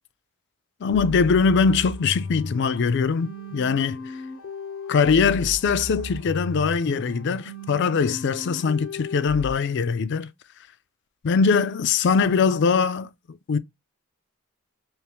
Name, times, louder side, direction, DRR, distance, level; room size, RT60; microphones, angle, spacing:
voice 1, 0.8-4.0 4.9-10.3 11.2-13.6, left 5 dB, 50° left, 0.4 m, -22 dB
sound 1, 0.9-9.5, left 2 dB, 75° left, 0.8 m, -35 dB
3.4 x 3.0 x 2.9 m
head